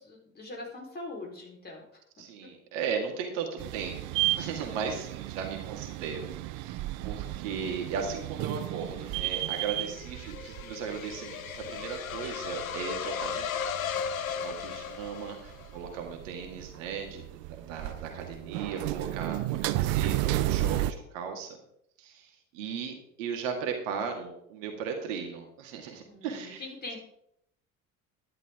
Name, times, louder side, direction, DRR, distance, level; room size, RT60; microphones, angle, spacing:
voice 1, 0.0-2.0 4.6-4.9 9.7-10.0 26.1-27.0, left 2 dB, 25° left, 0 dB, 4.1 m, -43 dB
voice 2, 2.2-13.6 14.0-21.6 22.0-26.6, right 6 dB, 65° right, 3 dB, 2.2 m, -37 dB
sound 1, 3.6-20.9, right 15 dB, 45° right, 0.6 m, -33 dB
sound 2, 8.7-15.8, left 7 dB, 75° left, 0.9 m, -36 dB
11.5 x 10.5 x 3.7 m, 0.73 s
figure-of-eight pair, 65°, 41 cm